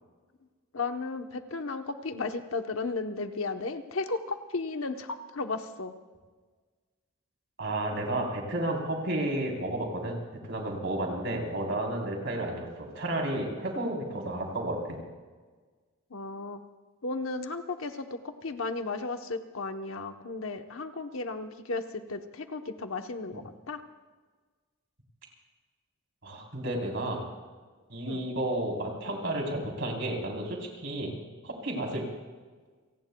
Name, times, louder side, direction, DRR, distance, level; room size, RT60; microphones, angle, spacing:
voice 1, 0.7-5.9 16.1-16.6 17.0-23.8 28.1-28.3, left 3 dB, 70° left, 7 dB, 1.0 m, -34 dB
voice 2, 7.6-10.2 10.4-15.0 26.2-27.2 27.9-31.1 31.4-32.1, right 1 dB, 60° right, 0 dB, 3.7 m, -32 dB
30.0 x 18.5 x 2.3 m, 1.4 s
head